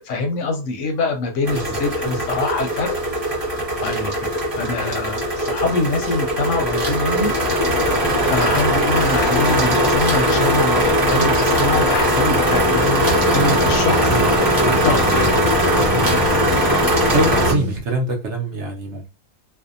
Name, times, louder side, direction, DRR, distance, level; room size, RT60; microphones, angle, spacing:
voice 1, 0.0-3.0 3.3-7.3 7.6-15.3 16.0-16.2, left 3 dB, 70° left, 3 dB, 0.8 m, -25 dB
sound 1, 1.4-17.5, equal, 15° right, 0.8 m, -19 dB
sound 2, 12.5-17.8, right 1 dB, 85° right, 1.3 m, -28 dB
voice 2, 14.6-15.0 15.8-16.0 17.1-19.1, right 2 dB, 65° right, 1 dB, 0.8 m, -24 dB
2.6 x 2.1 x 2.5 m, 0.28 s
omnidirectional pair, 1.5 m